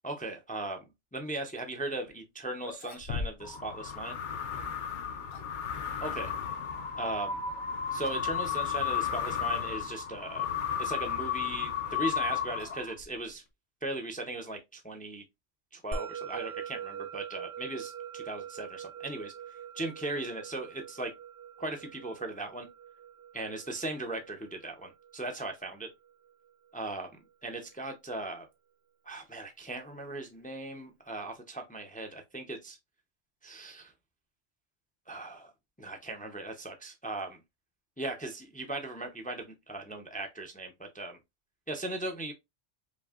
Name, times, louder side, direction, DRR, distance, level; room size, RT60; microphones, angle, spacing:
voice 1, 0.0-0.8 1.1-4.2 6.0-6.3 6.9-7.4 7.9-10.5 10.8-13.4 13.8-15.2 15.7-19.3 19.8-21.1 21.6-22.7 23.3-25.9 26.7-27.1 27.4-28.5 29.1-32.8 33.4-33.9 35.1-35.5 35.8-37.4 38.0-41.2 41.7-42.3, right 2 dB, 15° left, 0.3 m, -38 dB
sound 1, 2.1-2.2 2.6-3.7 3.9-4.1 4.9-5.6 7.4-7.7 8.0-8.3 8.6-8.7 9.5-9.6 11.4-13.5, left 5 dB, 85° left, 1.0 m, -42 dB
sound 2, 3.4-13.1, left 8 dB, 55° left, 0.6 m, -34 dB
Musical instrument, 15.9-26.5, right 7 dB, 65° right, 0.8 m, -43 dB
5.2 x 2.6 x 2.4 m
omnidirectional pair, 1.2 m